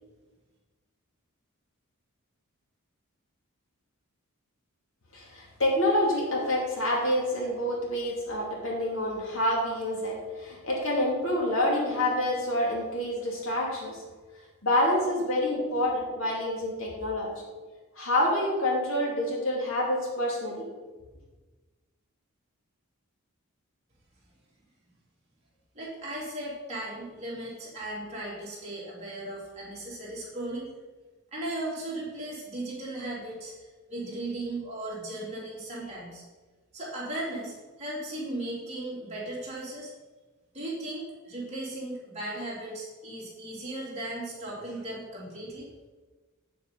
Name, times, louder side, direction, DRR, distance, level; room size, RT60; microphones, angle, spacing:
voice 1, 5.1-14.0 14.6-17.3 18.0-20.7, left 1 dB, 65° left, -2 dB, 2.7 m, -27 dB
voice 2, 25.7-30.7 31.3-36.2 36.7-39.9 40.5-45.7, right 1 dB, 30° right, -6 dB, 3.2 m, -37 dB
8.3 x 7.5 x 5.5 m, 1.3 s
head